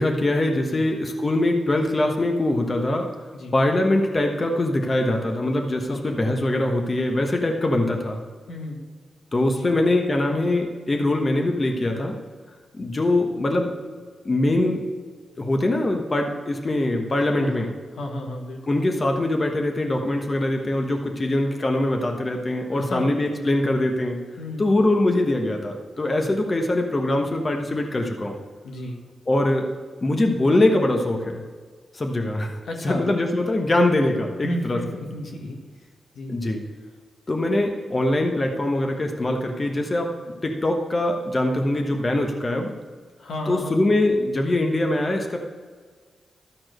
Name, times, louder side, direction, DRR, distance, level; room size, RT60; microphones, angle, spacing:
voice 1, 0.0-3.1 3.5-8.2 9.3-12.1 12.7-13.7 14.2-14.8 15.4-17.7 18.7-24.2 24.6-28.3 29.3-29.7 30.0-31.4 31.9-32.6 32.8-34.8 36.3-36.6 37.3-40.1 40.4-42.7 43.5-45.4, left 1 dB, 35° left, 2 dB, 1.1 m, -22 dB
voice 2, 8.5-8.8 9.5-9.7 17.4-18.8 22.7-23.6 24.4-24.7 26.2-26.3 28.6-29.0 32.6-33.1 34.4-35.6 36.1-36.3 43.2-43.9, left 1 dB, 85° left, -1 dB, 1.5 m, -33 dB
12.5 x 4.3 x 6.5 m, 1.6 s
cardioid pair, 60°, 0 cm